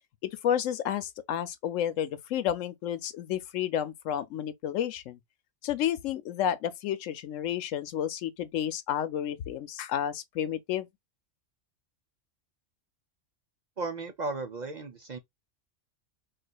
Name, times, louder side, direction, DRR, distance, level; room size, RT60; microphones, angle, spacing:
voice 1, 0.2-5.2 5.6-10.9, left 10 dB, 90° left, 1.0 m, -31 dB
voice 2, 13.8-15.2, right 3 dB, 50° right, 0.6 m, -35 dB
4.1 x 2.4 x 2.2 m
omnidirectional pair, 1.3 m